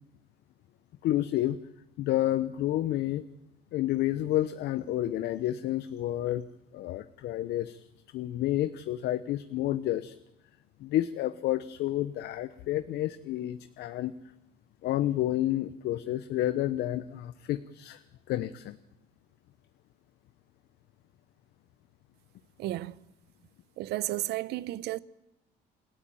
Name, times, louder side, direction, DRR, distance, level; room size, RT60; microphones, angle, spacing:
voice 1, 1.0-1.6 2.0-3.2 3.7-6.4 6.7-7.9 8.1-10.1 10.8-14.1 14.8-18.0 18.3-18.8, left 13 dB, 75° left, 1.0 m, -30 dB
voice 2, 22.6-23.0 23.8-25.0, right 16 dB, 80° right, 0.9 m, -33 dB
28.0 x 14.5 x 9.2 m
cardioid pair, 110°, 17 cm